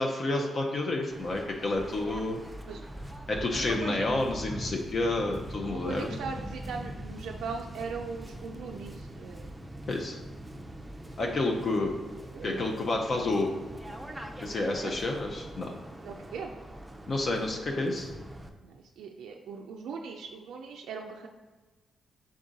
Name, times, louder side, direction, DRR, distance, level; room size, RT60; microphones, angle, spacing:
voice 1, 0.0-2.4 3.3-6.2 9.9-10.2 11.2-11.9 12.4-13.5 14.4-15.7 17.1-18.1, left 2 dB, 50° left, 1 dB, 0.5 m, -29 dB
Waves surf, 1.1-18.5, right 1 dB, 10° right, 0.5 m, -42 dB
voice 2, 3.6-4.1 5.7-9.5 11.5-11.7 12.3-12.9 14.8-14.9 16.0-16.5 18.6-21.3, right 5 dB, 90° right, 1 dB, 0.3 m, -39 dB
3.7 x 3.6 x 3.9 m, 1.2 s
cardioid pair, 90°, 0 cm